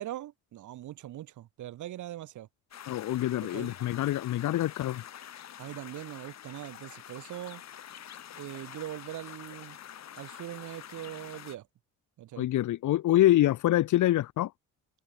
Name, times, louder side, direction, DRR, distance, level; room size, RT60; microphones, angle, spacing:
voice 1, 0.0-2.5 3.4-3.7 5.6-7.6 8.4-9.8 10.2-11.7 12.2-12.5, right 13 dB, 80° right, 2.3 m, -41 dB
sound 1, 2.7-11.6, left 10 dB, 60° left, 2.9 m, -47 dB
voice 2, 2.9-5.0 12.4-14.5, left 14 dB, 80° left, 2.0 m, -25 dB
open air
cardioid pair, 90°, 30 cm